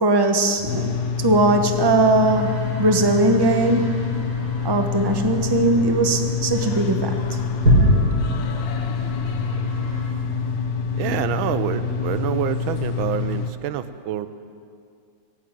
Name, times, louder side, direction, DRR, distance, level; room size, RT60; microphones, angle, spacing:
voice 1, 0.0-4.0 4.6-7.4, right 2 dB, 30° right, 5 dB, 0.4 m, -20 dB
sound 1, 0.5-12.4, left 1 dB, 10° left, 2.2 m, -36 dB
sound 2, 0.7-13.5, left 6 dB, 75° left, 1.6 m, -27 dB
sound 3, 2.2-10.0, equal, 50° right, 3.7 m, -26 dB
voice 2, 11.0-14.3, right 10 dB, 80° right, 12 dB, 1.5 m, -27 dB
17.0 x 8.4 x 9.1 m, 2.3 s
omnidirectional pair, 2.2 m